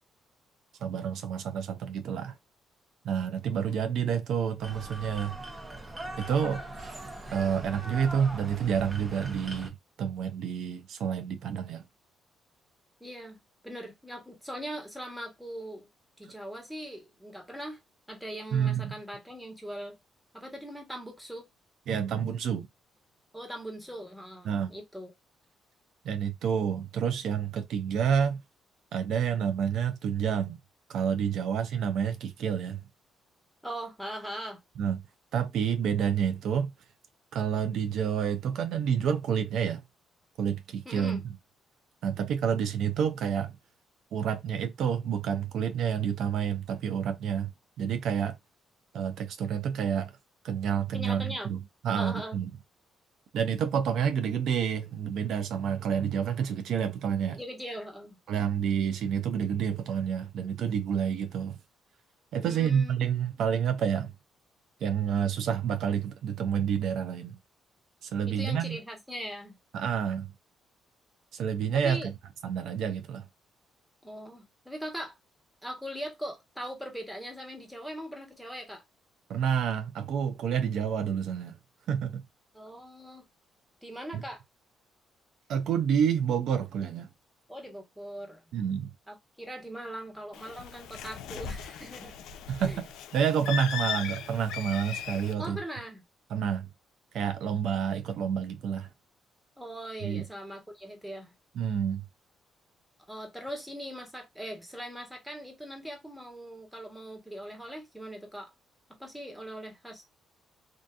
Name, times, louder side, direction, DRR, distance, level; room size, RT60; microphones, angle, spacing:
voice 1, 0.8-2.3 3.0-5.4 6.2-6.9 7.3-11.8 18.5-19.0 21.9-22.7 24.4-24.7 26.0-28.4 28.9-30.6 30.9-32.8 34.8-35.0 35.3-36.7 37.3-39.8 40.4-41.2 42.0-43.5 44.1-47.5 47.8-48.4 48.9-50.1 50.4-51.6 51.8-52.5 53.3-57.4 58.3-61.6 62.3-64.1 64.8-67.3 68.0-68.8 69.7-70.3 71.3-72.1 72.4-73.2 79.3-81.6 81.9-82.2 84.1-84.2 85.5-87.1 88.5-88.9 92.5-95.6 96.3-96.7 97.1-98.9 100.0-100.2 101.6-102.0, right 8 dB, 75° right, 0.4 m, -29 dB
sound 1, 4.6-9.7, right 1 dB, 20° right, 0.7 m, -41 dB
voice 2, 13.0-15.9 16.2-17.8 18.1-20.0 20.3-21.5 23.3-25.1 33.6-34.6 40.8-41.2 50.9-51.5 51.9-52.4 57.3-58.2 62.4-63.3 68.3-69.5 71.8-72.1 74.0-75.1 75.6-78.8 82.5-83.2 83.8-84.4 87.5-88.4 89.1-92.1 92.6-92.8 95.4-96.0 99.6-101.3 103.1-108.5 109.0-110.0, equal, 5° right, 1.1 m, -40 dB
Bird, 90.3-95.3, left 8 dB, 90° left, 0.3 m, -38 dB
2.6 x 2.4 x 2.3 m
cardioid pair, 90°, 0 cm